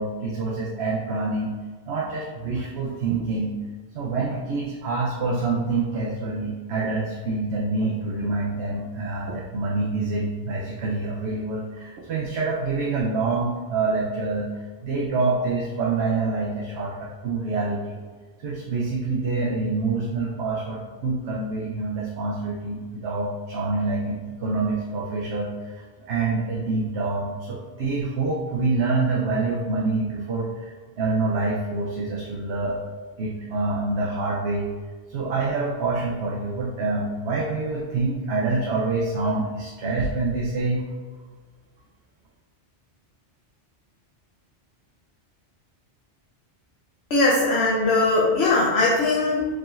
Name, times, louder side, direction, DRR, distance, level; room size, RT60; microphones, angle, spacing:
voice 1, 0.0-1.5 1.9-3.5 3.9-14.5 14.8-18.0 18.4-25.5 26.1-30.7 31.0-32.8 33.2-34.7 35.1-40.8, right 3 dB, 75° right, -3 dB, 0.9 m, -26 dB
voice 2, 47.1-49.5, left 2 dB, 70° left, -4 dB, 1.0 m, -20 dB
4.8 x 3.7 x 2.5 m, 1.4 s
omnidirectional pair, 1.2 m